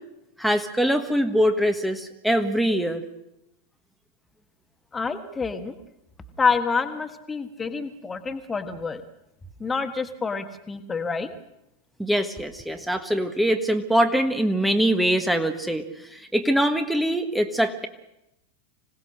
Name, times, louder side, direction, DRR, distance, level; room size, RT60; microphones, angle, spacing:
voice 1, 0.4-3.0 12.0-15.9 16.1-17.9, equal, ahead, 6 dB, 1.5 m, -23 dB
voice 2, 4.9-5.7 6.4-9.0 9.6-11.3, left 5 dB, 15° left, 8 dB, 1.5 m, -27 dB
26.0 x 18.0 x 6.5 m, 0.88 s
figure-of-eight pair, 90°, 0 cm